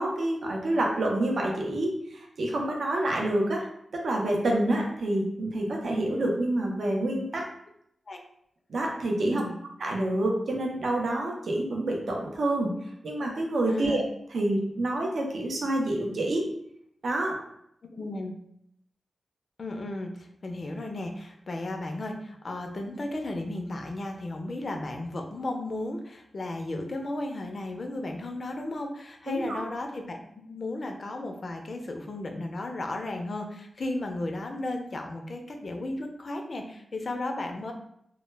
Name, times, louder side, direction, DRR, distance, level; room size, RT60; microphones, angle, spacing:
voice 1, 0.0-3.7 3.9-7.4 8.7-9.4 9.8-12.7 13.0-14.0 14.3-16.5 17.0-17.4 29.3-29.6, right 1 dB, 70° right, 0 dB, 0.5 m, -27 dB
voice 2, 9.1-9.5 13.7-14.0 17.8-18.3 19.6-30.2 30.5-37.7, left 2 dB, 50° left, 4 dB, 0.4 m, -34 dB
2.1 x 2.0 x 3.2 m, 0.73 s
wide cardioid pair, 100°, 0 cm